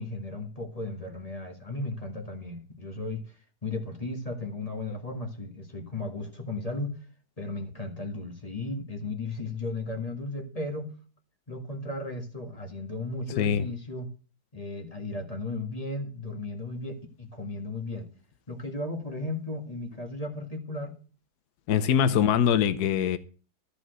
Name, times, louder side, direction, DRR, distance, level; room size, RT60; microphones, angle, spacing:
voice 1, 0.0-3.4 3.6-7.0 7.4-10.9 11.5-14.1 14.5-18.1 18.5-20.9 22.0-22.3, left 2 dB, 20° left, 1.8 m, -35 dB
voice 2, 21.7-23.2, left 8 dB, 70° left, 1.3 m, -23 dB
13.5 x 5.1 x 7.8 m
omnidirectional pair, 1.9 m